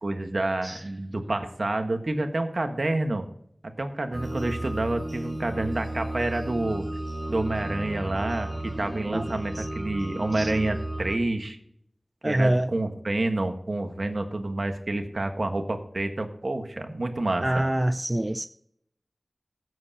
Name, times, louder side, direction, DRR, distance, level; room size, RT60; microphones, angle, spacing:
voice 1, 0.0-3.2 3.8-6.8 7.3-11.6 12.2-17.6, right 2 dB, 65° right, 1.4 m, -28 dB
sound 1, 4.1-11.2, right 1 dB, 5° right, 2.1 m, -34 dB
voice 2, 12.2-12.7 17.4-18.5, right 1 dB, 25° right, 0.5 m, -25 dB
15.5 x 8.0 x 2.9 m
wide cardioid pair, 50°, 0 cm